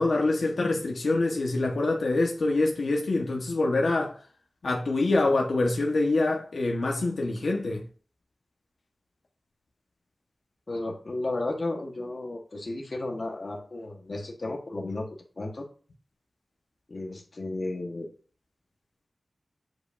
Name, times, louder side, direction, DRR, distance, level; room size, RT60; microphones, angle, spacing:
voice 1, 0.0-4.2 4.6-7.8, left 2 dB, 80° left, 1.2 m, -25 dB
voice 2, 10.7-15.1 15.4-15.7 16.9-18.1, left 2 dB, 50° left, 1.3 m, -33 dB
7.8 x 5.2 x 2.6 m
wide cardioid pair, 95°, 0 cm